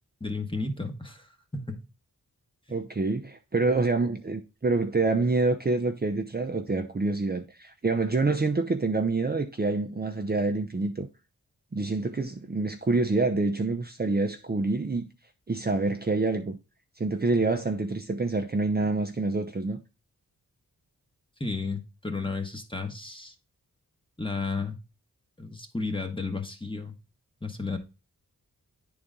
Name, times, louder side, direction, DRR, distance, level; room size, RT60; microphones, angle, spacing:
voice 1, 0.2-1.3 1.5-1.8 2.7-2.8 21.4-23.3 24.2-24.8 25.4-26.9 27.4-27.8, left 3 dB, 15° left, 1.4 m, -33 dB
voice 2, 2.7-11.1 11.7-15.0 15.5-16.6 17.0-19.8, right 3 dB, 30° right, 0.7 m, -27 dB
9.7 x 4.0 x 3.7 m
cardioid pair, 60°, 35 cm